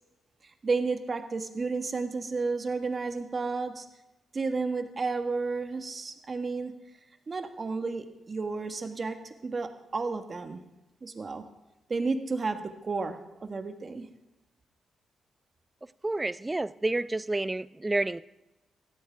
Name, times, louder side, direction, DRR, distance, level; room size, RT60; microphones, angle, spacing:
voice 1, 0.6-3.9 4.3-6.7 7.3-10.6 11.0-11.4 11.9-14.1, right 4 dB, 40° right, 7 dB, 1.5 m, -32 dB
voice 2, 16.0-18.2, right 2 dB, 20° right, 18 dB, 0.4 m, -29 dB
18.5 x 14.0 x 3.6 m, 0.96 s
cardioid pair, 80°, 0 cm